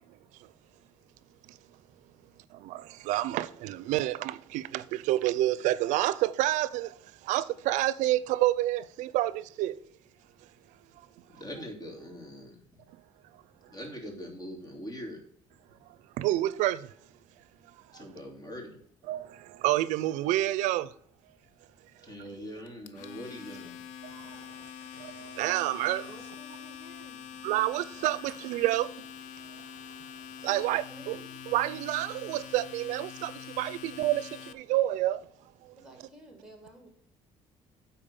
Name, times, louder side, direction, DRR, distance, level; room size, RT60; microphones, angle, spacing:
voice 1, 3.1-4.8 5.1-6.9 7.3-9.7 16.2-16.8 19.1-19.2 19.6-20.9 25.4-26.0 27.4-28.9 30.4-31.2 31.5-33.3 33.6-34.2 34.7-35.2, right 15 dB, 90° right, 0.4 m, -28 dB
voice 2, 11.4-12.6 13.7-15.2 17.9-18.8 22.1-23.8, equal, 30° left, 3.1 m, -42 dB
Domestic sounds home sounds, 22.7-34.5, left 8 dB, 85° left, 0.7 m, -45 dB
voice 3, 26.1-27.2 30.4-31.2 35.8-36.9, right 1 dB, 5° right, 2.8 m, -52 dB
8.8 x 4.4 x 6.9 m
cardioid pair, 125°, 12 cm